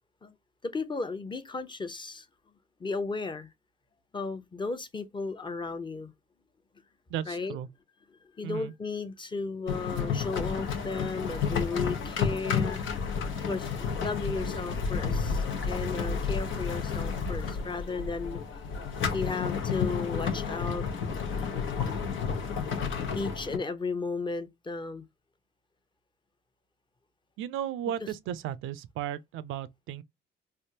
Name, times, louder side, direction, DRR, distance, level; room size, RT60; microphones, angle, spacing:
voice 1, 0.6-2.3 2.8-3.5 4.1-6.1 7.3-7.6 8.2-12.8 13.4-18.4 19.1-20.8 23.1-25.1, left 4 dB, 25° left, 0.7 m, -34 dB
voice 2, 7.1-7.7 8.4-8.7 27.4-30.0, right 10 dB, 85° right, 0.5 m, -35 dB
sound 1, 9.7-23.6, left 6 dB, 75° left, 1.0 m, -31 dB
3.4 x 2.5 x 2.7 m
cardioid pair, 90°, 20 cm